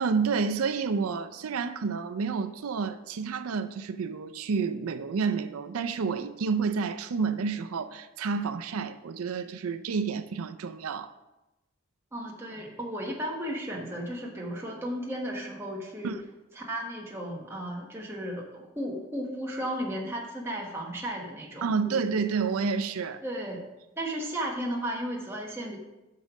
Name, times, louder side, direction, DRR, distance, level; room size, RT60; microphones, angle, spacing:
voice 1, 0.0-11.1 16.0-16.2 21.6-23.2, right 5 dB, 90° right, 0.4 m, -29 dB
voice 2, 12.1-16.2 16.5-22.0 23.2-23.6 24.0-25.8, equal, 10° right, 1.3 m, -34 dB
6.5 x 5.4 x 6.0 m
head